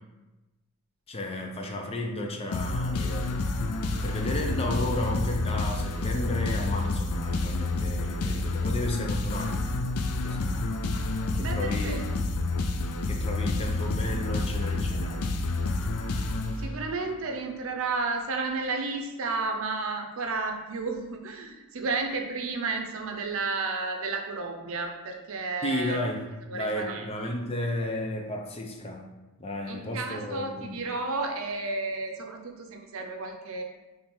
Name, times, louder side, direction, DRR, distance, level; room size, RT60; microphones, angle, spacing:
voice 1, 1.1-3.3 4.0-9.6 10.2-10.5 11.3-12.2 13.1-15.2 25.6-26.2 26.5-29.1 29.4-30.8, left 1 dB, 25° left, 2 dB, 0.5 m, -33 dB
sound 1, 2.5-17.1, left 2 dB, 80° left, 0.4 m, -29 dB
voice 2, 11.4-12.0 16.6-26.0 26.5-27.1 29.7-33.6, right 3 dB, 65° right, 3 dB, 0.6 m, -32 dB
3.7 x 3.3 x 4.3 m, 1.1 s
head